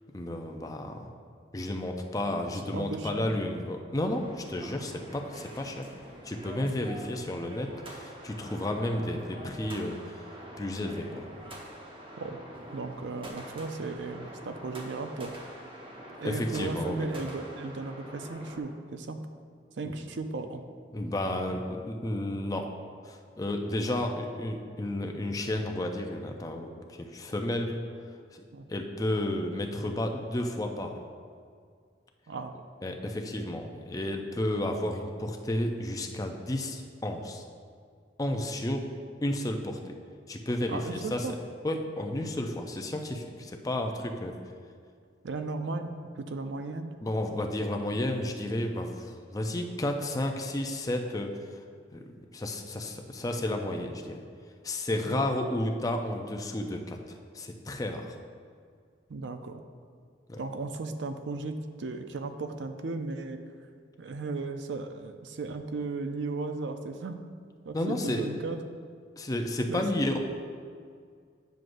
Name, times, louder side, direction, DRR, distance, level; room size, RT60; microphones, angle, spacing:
voice 1, 0.1-1.1 1.5-5.9 6.2-10.2 10.6-11.2 16.2-17.1 19.8-20.0 20.9-22.7 23.0-27.8 28.3-28.4 28.7-31.0 32.8-37.4 38.2-38.9 39.2-39.9 40.3-41.3 41.6-44.4 47.0-51.6 51.9-54.2 54.6-58.2 60.3-60.4 67.7-68.3 69.2-70.2, left 1 dB, 20° left, 3 dB, 0.4 m, -32 dB
voice 2, 2.7-3.3 12.2-12.4 12.7-15.3 16.2-19.2 19.8-20.7 28.5-28.7 32.3-32.6 40.7-41.3 45.2-46.9 55.1-55.2 59.1-59.6 60.4-63.4 64.0-67.2 67.7-68.6 69.7-69.8, right 3 dB, 85° right, 7 dB, 0.5 m, -36 dB
sound 1, 4.1-18.6, equal, 30° right, 0.8 m, -45 dB
9.1 x 6.2 x 2.6 m, 2.1 s
head